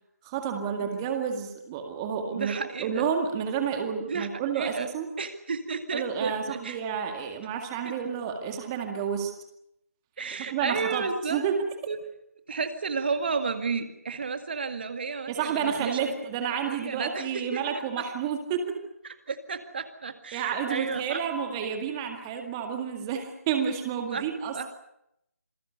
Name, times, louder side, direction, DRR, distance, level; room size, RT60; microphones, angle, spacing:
voice 1, 0.2-5.1 5.9-9.3 10.5-11.6 15.3-18.8 20.3-24.7, right 7 dB, 15° right, 4 dB, 1.9 m, -30 dB
voice 2, 2.3-3.1 4.1-4.3 4.5-4.9 5.2-6.8 7.8-7.9 10.2-11.4 11.9-12.0 12.5-15.9 16.6-17.8 19.3-21.2 24.1-24.2 24.5-24.7, right 5 dB, 40° right, 8 dB, 2.0 m, -32 dB
27.5 x 20.5 x 6.9 m, 0.80 s
figure-of-eight pair, 155°, 8 cm